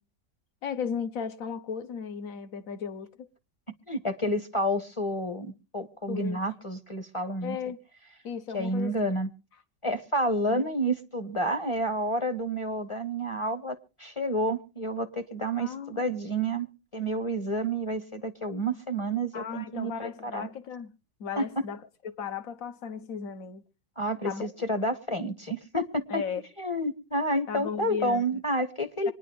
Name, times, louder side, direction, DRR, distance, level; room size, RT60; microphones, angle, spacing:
voice 1, 0.6-3.3 6.1-6.4 7.4-7.8 8.2-9.1 10.5-10.7 15.6-16.1 19.3-20.9 21.2-23.6 24.2-24.5 26.1-26.4 27.5-28.4 29.1-29.2, left 6 dB, 55° left, 1.4 m, -36 dB
voice 2, 3.9-7.6 8.5-9.3 9.8-16.7 16.9-20.5 21.4-21.5 24.0-26.2 26.6-29.1, right 1 dB, 20° left, 1.1 m, -29 dB
25.5 x 10.5 x 3.4 m
omnidirectional pair, 1.9 m